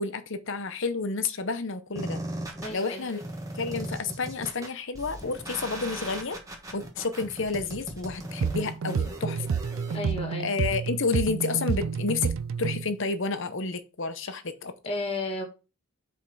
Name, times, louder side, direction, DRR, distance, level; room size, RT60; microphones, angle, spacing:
voice 1, 0.0-2.2 2.7-3.2 3.5-6.4 6.7-9.5 9.9-10.0 10.4-12.3 12.6-14.7, left 4 dB, 55° left, 0.8 m, -30 dB
sound 1, 2.0-10.0, right 1 dB, 15° right, 1.2 m, -38 dB
voice 2, 2.6-3.0 9.9-10.5 14.9-15.4, left 2 dB, 25° left, 1.8 m, -32 dB
sound 2, 8.4-12.9, right 6 dB, 60° right, 0.4 m, -29 dB
5.4 x 4.4 x 6.2 m
head